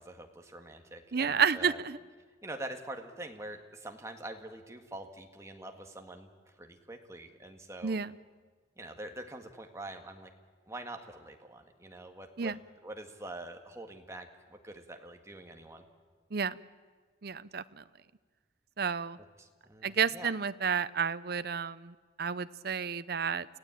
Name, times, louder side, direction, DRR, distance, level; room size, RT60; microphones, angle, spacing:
voice 1, 0.0-1.8 2.4-6.3 6.6-8.0 8.8-10.3 10.7-12.5 12.8-15.8 19.4-20.3, right 1 dB, 15° right, 4 dB, 1.8 m, -45 dB
voice 2, 1.1-2.0 7.8-8.1 12.4-12.6 16.3-16.6 17.2-17.8 18.8-19.2 19.8-23.5, right 6 dB, 50° right, 15 dB, 0.6 m, -31 dB
29.5 x 16.0 x 9.0 m, 1.5 s
head